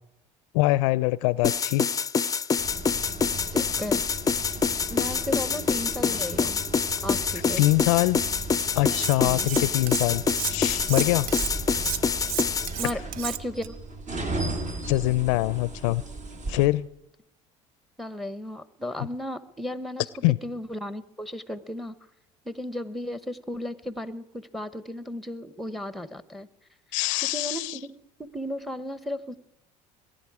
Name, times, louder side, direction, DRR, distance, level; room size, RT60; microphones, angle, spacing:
voice 1, 0.5-1.9 7.6-8.2 8.8-10.2 10.5-11.3 14.9-16.0 16.5-16.9 20.2-20.4 26.9-27.8, left 19 dB, 85° left, 21 dB, 0.4 m, -23 dB
sound 1, 1.4-12.7, left 5 dB, 20° left, 0.4 m, -26 dB
sound 2, 2.6-16.7, right 2 dB, 50° right, 2.6 m, -36 dB
voice 2, 3.5-4.0 4.9-6.6 7.0-7.7 9.2-9.5 12.8-13.7 18.0-20.1 20.4-21.9 22.4-24.2 24.5-26.5 27.3-28.0 28.3-29.4, left 1 dB, ahead, 15 dB, 0.9 m, -34 dB
Cutlery silverware, 8.9-9.6 9.9-13.7, right 11 dB, 70° right, 0.6 m, -32 dB
22.0 x 10.0 x 4.8 m, 0.83 s
supercardioid pair, 85°, 16 cm